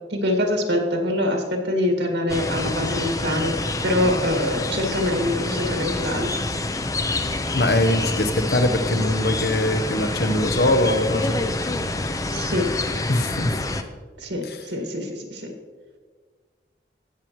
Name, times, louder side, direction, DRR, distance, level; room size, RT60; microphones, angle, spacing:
voice 1, 0.1-3.6 3.8-6.3 12.3-12.7 14.2-15.5, left 1 dB, 90° right, 2 dB, 1.9 m, -24 dB
sound 1, 2.3-13.8, left 2 dB, 20° left, 0.5 m, -27 dB
voice 2, 7.5-11.4 13.1-13.6 14.4-14.6, left 1 dB, 65° left, 9 dB, 0.8 m, -22 dB
16.5 x 7.1 x 3.1 m, 1.5 s
head